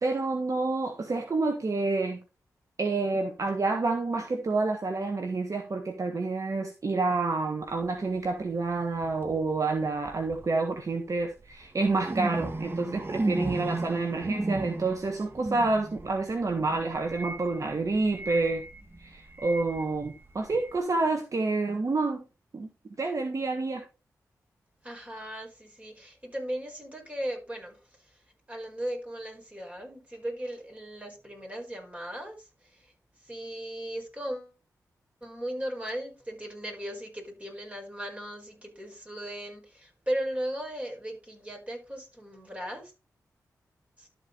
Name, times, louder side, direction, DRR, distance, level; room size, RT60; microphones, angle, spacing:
voice 1, 0.0-2.2 2.8-18.6 19.0-22.2 22.5-22.7 23.0-23.8, right 3 dB, 55° right, 1.5 m, -28 dB
sound 1, 7.7-7.9 8.9-9.4 10.0-10.5 11.2-20.8, right 2 dB, 35° right, 1.4 m, -35 dB
voice 2, 24.8-27.8 28.5-32.9 33.2-34.6 35.2-42.9 44.0-44.1, right 1 dB, 20° right, 5.1 m, -37 dB
12.0 x 4.8 x 4.0 m
cardioid pair, 40°, 7 cm